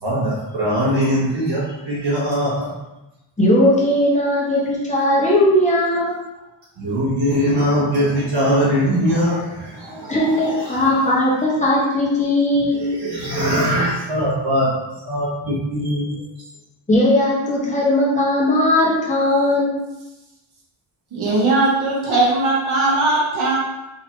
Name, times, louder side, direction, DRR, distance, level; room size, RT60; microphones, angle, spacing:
voice 1, 0.0-2.7 6.8-11.1 12.8-14.7 15.0-16.2, equal, 60° right, -9 dB, 1.3 m, -21 dB
voice 2, 3.4-6.2 10.1-12.8 16.9-19.8, left 1 dB, 15° left, -6 dB, 1.1 m, -18 dB
voice 3, 21.1-23.6, right 2 dB, 85° right, -4 dB, 1.3 m, -18 dB
3.9 x 3.0 x 3.0 m, 1.0 s
wide cardioid pair, 110°, 47 cm